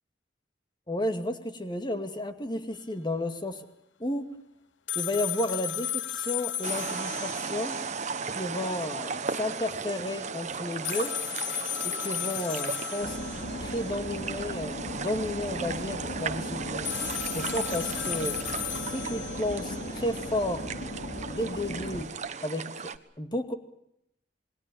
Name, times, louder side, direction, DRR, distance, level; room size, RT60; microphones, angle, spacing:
voice 1, 0.9-3.6 4.0-4.3 5.0-7.8 8.3-11.1 11.8-13.2 13.6-16.9 17.3-18.4 18.8-20.6 21.3-22.1 22.4-22.9 23.2-23.5, left 1 dB, 25° left, 8 dB, 2.3 m, -32 dB
sound 1, 4.9-7.9 8.2-8.3 10.8-13.9 16.9-19.9, left 11 dB, 80° left, 1.0 m, -34 dB
sound 2, 6.6-23.0, right 5 dB, 40° right, 1.3 m, -36 dB
sound 3, 13.0-22.0, left 1 dB, 60° left, 3.6 m, -37 dB
28.0 x 21.5 x 7.1 m, 0.77 s
head